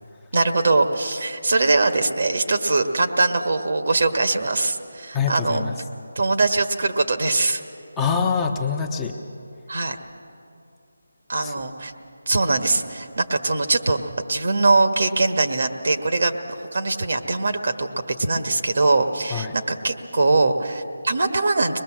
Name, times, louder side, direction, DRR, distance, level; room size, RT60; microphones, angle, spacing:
voice 1, 0.3-5.6 6.1-7.6 9.7-10.0 11.3-11.9 12.3-14.0 14.3-16.4 16.7-17.9 18.2-21.8, right 3 dB, 60° right, 6 dB, 1.6 m, -21 dB
voice 2, 5.1-5.7 8.0-9.2 11.4-11.5 19.3-19.5, left 6 dB, 10° left, 1 dB, 0.9 m, -24 dB
23.5 x 20.5 x 7.6 m, 2.5 s
figure-of-eight pair, 165°, 0 cm